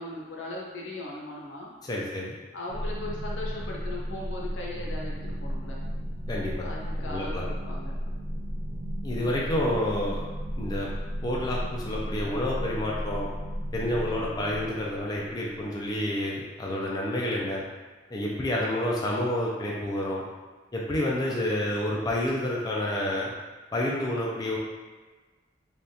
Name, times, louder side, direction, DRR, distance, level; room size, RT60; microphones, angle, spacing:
voice 1, 0.0-1.7 2.5-5.8 6.6-8.0 9.7-9.8 14.0-14.3, left 2 dB, 85° left, -3 dB, 0.7 m, -39 dB
voice 2, 1.8-2.4 6.3-6.5 7.0-7.4 9.0-10.2 10.6-10.9 11.2-13.3 13.7-17.6 18.1-20.2 20.7-23.3 23.7-24.6, left 1 dB, 20° left, -4 dB, 0.3 m, -29 dB
sound 1, 2.7-16.0, equal, 65° right, 0.6 m, -34 dB
3.4 x 2.3 x 2.7 m, 1.3 s
head